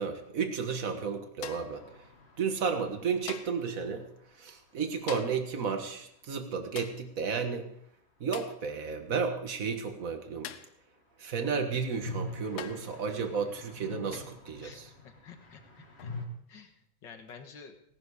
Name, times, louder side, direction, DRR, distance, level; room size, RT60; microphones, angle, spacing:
voice 1, 0.0-1.8 2.4-4.1 4.4-7.7 8.2-10.5 11.2-14.8, right 5 dB, 45° right, 6 dB, 1.1 m, -32 dB
sound 1, 1.4-1.8 3.3-3.7 5.1-5.5 6.8-7.1 8.3-8.6 10.4-10.8 11.9-12.0 12.6-12.9 14.1-14.4 16.0-16.2, left 11 dB, 75° left, 1.6 m, -44 dB
sound 2, 1.6-5.4 5.7-5.8 5.9-6.0 11.1-16.3, left 2 dB, 30° left, 1.4 m, -45 dB
voice 2, 14.6-16.1 16.5-17.8, left 6 dB, 50° left, 6 dB, 1.7 m, -51 dB
17.5 x 12.0 x 4.9 m, 0.70 s
omnidirectional pair, 3.3 m